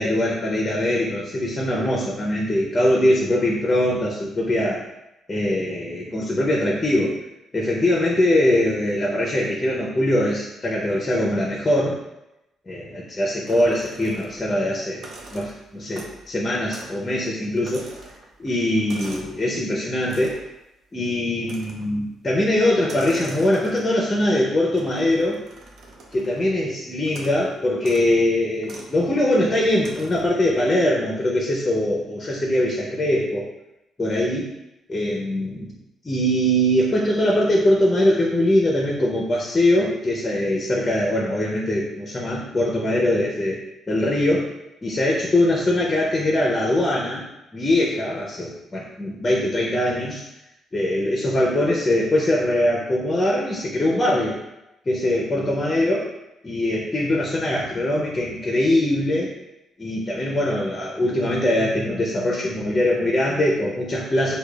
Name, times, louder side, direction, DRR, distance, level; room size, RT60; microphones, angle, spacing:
voice 1, 0.0-4.8 5.3-7.1 7.5-12.0 12.7-15.0 15.3-17.9 18.4-20.4 20.9-25.4 26.1-33.5 34.0-34.5 34.9-35.8 36.0-43.6 43.9-44.5 44.8-47.2 47.5-50.2 50.7-54.4 54.9-56.1 56.4-59.3 59.8-64.4, left 1 dB, 25° left, -2 dB, 0.6 m, -22 dB
sound 1, 13.5-14.5 14.9-16.3 16.7-17.0 17.3-19.4 20.0-20.5 21.4-22.0 22.8-24.1 24.8-26.5 27.1-27.4 27.8-28.1 28.6-28.9 29.8-30.4, right 2 dB, 60° right, 0.6 m, -43 dB
4.8 x 2.2 x 2.3 m, 0.93 s
cardioid pair, 90°, 0 cm